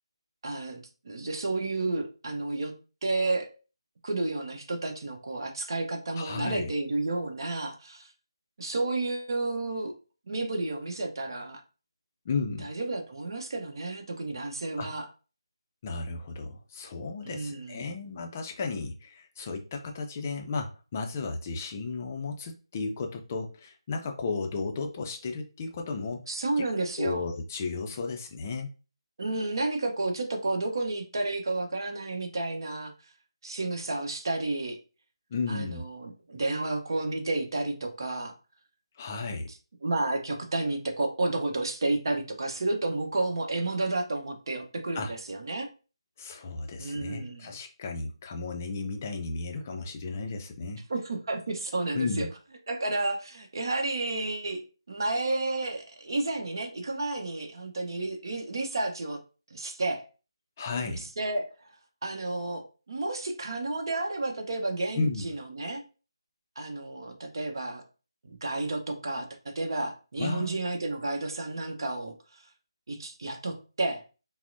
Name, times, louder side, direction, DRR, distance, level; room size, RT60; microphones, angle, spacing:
voice 1, 0.4-2.7 3.0-3.5 4.0-8.1 8.6-9.9 10.3-11.6 12.6-15.1 17.2-17.9 26.3-27.2 29.2-32.9 33.4-34.8 35.5-38.3 39.8-45.7 46.8-47.5 50.9-52.3 52.7-59.2 59.5-60.1 60.8-61.7 62.0-65.8 66.6-67.8 68.2-72.4 72.9-74.0, right 2 dB, 50° right, 4 dB, 0.8 m, -31 dB
voice 2, 6.2-6.7 12.3-12.7 14.8-14.9 15.8-26.2 26.6-26.7 27.0-28.7 35.3-35.8 39.0-39.5 44.9-45.1 46.2-50.8 51.9-52.3 60.6-61.0 65.0-65.3 70.2-70.6, left 4 dB, 25° left, 4 dB, 0.4 m, -34 dB
5.7 x 2.0 x 2.6 m, 0.34 s
figure-of-eight pair, 155°, 3 cm